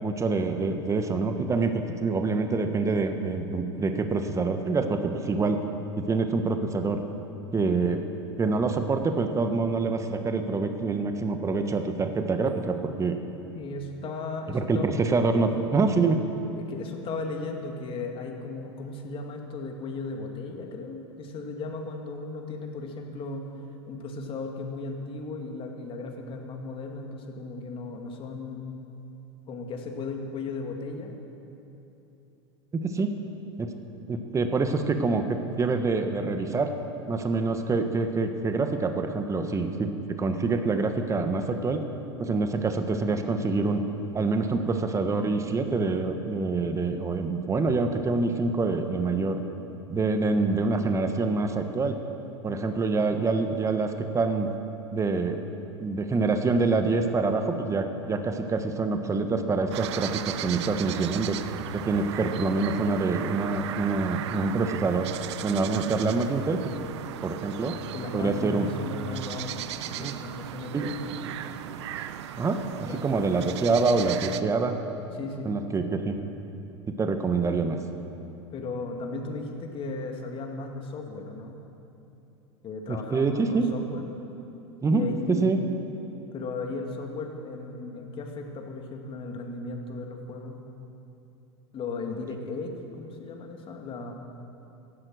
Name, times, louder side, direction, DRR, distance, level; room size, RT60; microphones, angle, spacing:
voice 1, 0.0-5.6 6.0-7.0 7.5-8.0 8.4-13.2 14.5-16.2 32.7-33.2 33.6-33.7 34.1-36.7 37.1-41.8 42.2-43.8 44.1-49.4 49.9-52.0 52.4-54.5 54.9-55.4 55.8-61.4 61.7-65.1 65.4-66.6 67.2-67.8 68.1-68.7 70.0-70.2 70.7-70.9 72.4-74.7 75.4-76.2 76.9-77.8 82.9-83.7 84.8-85.6, right 3 dB, 20° right, 7 dB, 1.3 m, -26 dB
voice 2, 13.6-14.9 16.6-23.5 23.9-28.8 29.5-31.2 52.5-53.0 67.9-70.9 71.3-71.4 72.8-73.0 75.2-75.5 78.5-81.6 82.6-84.1 84.9-85.5 86.3-90.6 91.7-94.1, left 3 dB, 40° left, 2 dB, 2.3 m, -36 dB
sound 1, 59.7-74.4, right 11 dB, 75° right, 0.7 m, -37 dB
15.5 x 11.5 x 6.3 m, 2.9 s
hypercardioid pair, 95°, 15 cm